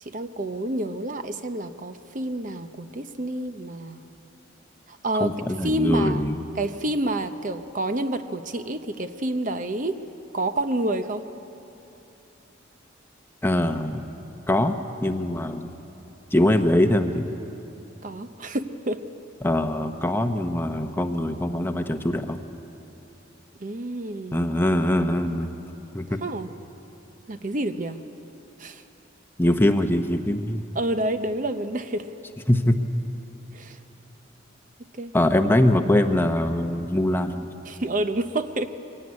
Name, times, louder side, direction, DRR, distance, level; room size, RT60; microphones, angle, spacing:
voice 1, 0.0-4.0 4.9-5.3 5.6-6.2 6.6-10.0 10.3-11.3 18.0-19.0 23.6-24.5 26.2-26.5 27.3-28.0 28.6-28.8 30.7-32.1 33.5-33.8 34.9-35.1 37.7-38.7, right 1 dB, 45° right, 9 dB, 0.8 m, -28 dB
voice 2, 5.2-6.3 13.4-14.0 14.5-14.7 15.0-15.7 16.3-17.2 19.4-22.4 24.3-25.5 25.9-26.0 29.4-30.6 32.5-32.8 35.1-37.5, left 1 dB, 10° left, 7 dB, 0.9 m, -22 dB
23.5 x 17.0 x 9.6 m, 2.9 s
head